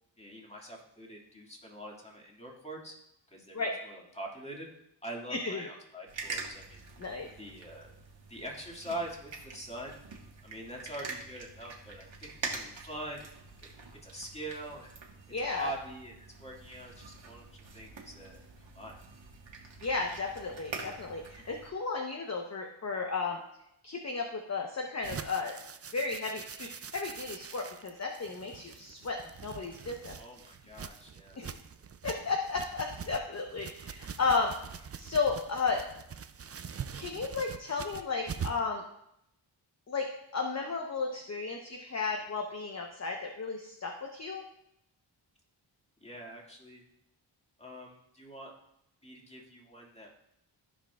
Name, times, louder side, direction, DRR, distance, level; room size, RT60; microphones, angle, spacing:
voice 1, 0.2-2.9 3.3-4.7 5.0-6.8 7.4-7.9 8.3-10.0 10.4-13.3 14.0-14.9 15.4-16.1 16.4-19.0 30.2-31.4 46.0-46.8 47.6-48.5 49.0-50.2, right 1 dB, 15° left, -2 dB, 2.1 m, -44 dB
voice 2, 5.3-5.7 7.0-7.3 15.3-15.7 19.8-23.4 23.8-25.5 25.9-30.1 31.4-31.6 32.0-34.5 35.0-35.8 36.9-38.8 39.9-44.4, left 4 dB, 35° left, 1 dB, 0.9 m, -34 dB
sound 1, 6.1-21.7, right 4 dB, 70° right, 1.6 m, -45 dB
sound 2, 25.0-38.7, right 7 dB, 35° right, 0.4 m, -44 dB
15.0 x 5.0 x 2.4 m, 0.80 s
cardioid pair, 70°, 46 cm